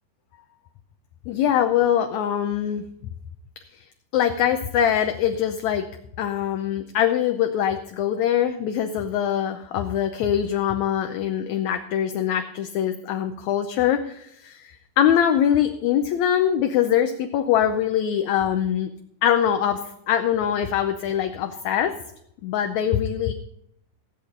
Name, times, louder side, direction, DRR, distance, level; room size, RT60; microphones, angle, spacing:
voice 1, 1.3-2.8 3.8-3.9 4.1-5.9 6.2-18.9 19.2-22.0 22.4-23.3, left 9 dB, 75° left, 6 dB, 1.9 m, -23 dB
17.0 x 8.3 x 5.2 m, 0.75 s
omnidirectional pair, 3.7 m